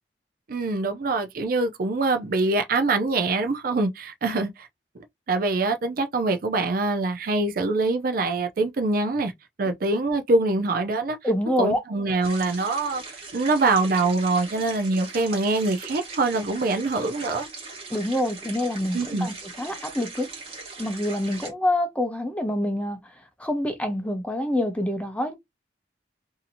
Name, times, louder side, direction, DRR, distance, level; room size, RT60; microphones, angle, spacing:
voice 1, 0.5-4.7 5.3-9.3 9.6-11.2 11.6-13.0 13.3-17.5 18.9-19.3, right 3 dB, 55° right, 0.5 m, -24 dB
voice 2, 11.2-11.8 17.9-20.3 20.8-23.0 23.4-25.4, left 1 dB, 10° left, 0.6 m, -26 dB
sound 1, 12.2-21.5, right 3 dB, 35° right, 1.3 m, -40 dB
2.7 x 2.7 x 2.5 m
head